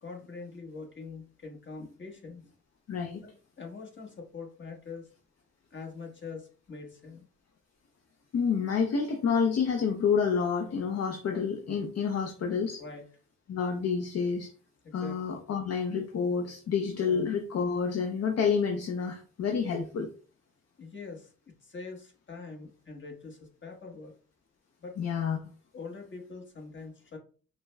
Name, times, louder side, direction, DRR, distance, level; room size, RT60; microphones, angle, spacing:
voice 1, 0.0-2.4 3.2-3.3 3.6-5.1 5.7-7.2 12.8-13.0 14.8-15.2 17.0-17.2 20.8-24.1 24.8-25.0 25.7-27.2, left 4 dB, 40° left, 1 dB, 1.2 m, -44 dB
voice 2, 2.9-3.2 8.3-12.8 13.5-14.5 14.9-20.1 25.0-25.4, left 6 dB, 55° left, 4 dB, 0.6 m, -29 dB
5.7 x 2.1 x 2.2 m, 0.39 s
cardioid pair, 80°, 30 cm